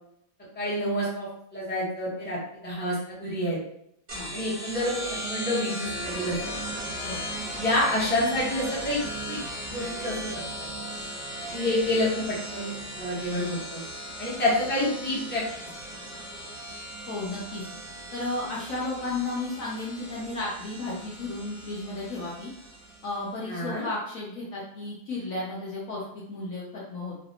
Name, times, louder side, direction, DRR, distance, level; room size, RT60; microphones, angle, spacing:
voice 1, 0.5-3.6 4.3-6.4 7.1-7.2 7.6-9.0 9.3-9.4 9.7-10.3 11.5-12.2 12.5-13.8 14.2-15.4 23.5-23.8, left 1 dB, 5° left, -8 dB, 1.0 m, -28 dB
sound 1, 4.1-23.2, equal, 35° right, 0.8 m, -37 dB
voice 2, 17.1-17.6 18.1-22.5 23.0-27.2, left 2 dB, 60° left, -6 dB, 1.0 m, -33 dB
3.2 x 2.5 x 2.8 m, 0.75 s
omnidirectional pair, 1.8 m